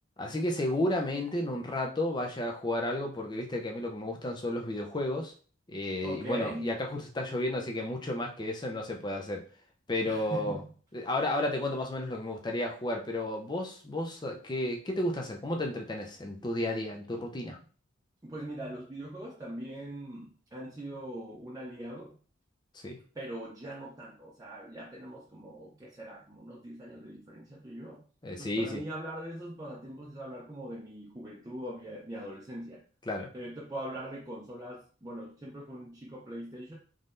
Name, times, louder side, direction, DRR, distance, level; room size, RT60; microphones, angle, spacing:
voice 1, 0.2-5.3 5.7-9.4 9.9-10.6 10.9-17.6 22.7-23.0 28.2-28.8 33.1-33.3, left 1 dB, 20° left, 2 dB, 0.6 m, -32 dB
voice 2, 6.0-6.8 10.0-10.7 18.2-22.1 23.1-28.0 28.4-32.8 33.3-36.7, right 1 dB, 20° right, -5 dB, 0.6 m, -41 dB
3.8 x 3.2 x 2.6 m, 0.40 s
head